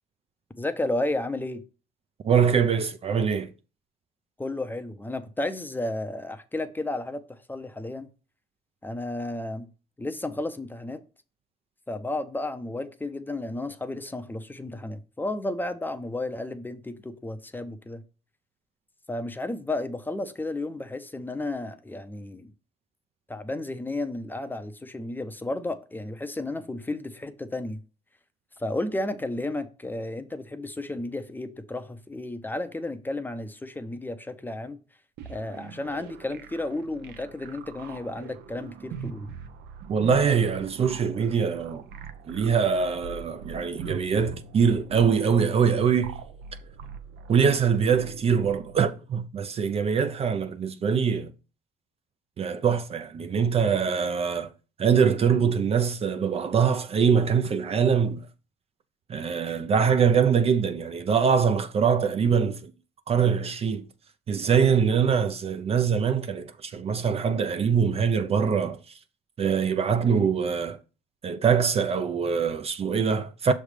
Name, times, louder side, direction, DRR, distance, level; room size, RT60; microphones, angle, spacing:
voice 1, 0.6-1.6 4.4-8.1 8.8-9.7 10.0-11.0 11.9-18.0 19.1-22.5 23.3-27.8 28.6-34.8 35.2-39.3, left 2 dB, 10° left, 0.6 m, -33 dB
voice 2, 2.2-3.5 39.9-41.8 42.3-46.2 47.3-51.3 52.4-54.5 54.8-58.3 59.1-62.7 63.1-63.9 64.3-68.8 69.4-70.8 71.2-73.5, right 6 dB, 35° right, 0.5 m, -23 dB
sound 1, 35.2-48.8, right 6 dB, 80° right, 0.7 m, -42 dB
6.3 x 3.3 x 5.0 m
cardioid pair, 110°, 17 cm